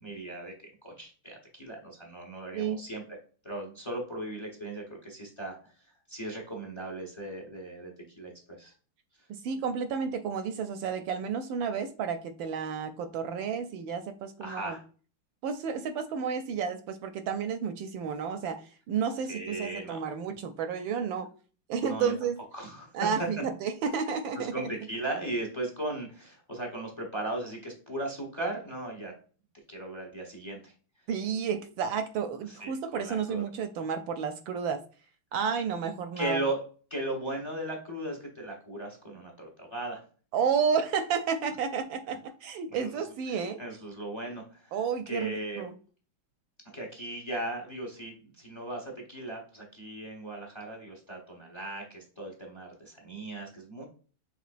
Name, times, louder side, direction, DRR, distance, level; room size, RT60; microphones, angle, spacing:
voice 1, 0.0-0.5 0.8-3.0 3.4-5.6 6.1-8.7 14.4-14.8 19.3-20.0 21.8-22.1 22.5-22.9 24.4-29.1 29.7-30.7 32.5-33.4 36.2-36.6 36.9-40.0 42.8-43.0 43.3-44.8 45.1-45.6 46.7-53.8, right 1 dB, 30° left, 1 dB, 0.5 m, -37 dB
voice 2, 9.3-14.8 15.4-18.6 18.9-21.3 21.7-22.4 22.9-24.7 31.1-34.8 35.3-36.4 40.3-43.6 44.7-45.7, right 6 dB, 75° right, 8 dB, 1.2 m, -31 dB
6.1 x 3.5 x 2.5 m, 0.40 s
omnidirectional pair, 2.4 m